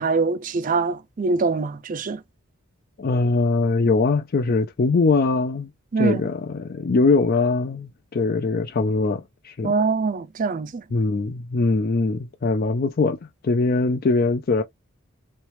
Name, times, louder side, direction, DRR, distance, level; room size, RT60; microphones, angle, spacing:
voice 1, 0.0-2.2 5.9-6.2 9.6-10.8, right 4 dB, 35° right, 0.4 m, -23 dB
voice 2, 3.0-5.7 6.0-9.7 10.9-13.2 13.4-14.6, left 3 dB, 45° left, 0.4 m, -22 dB
3.2 x 3.0 x 3.0 m
head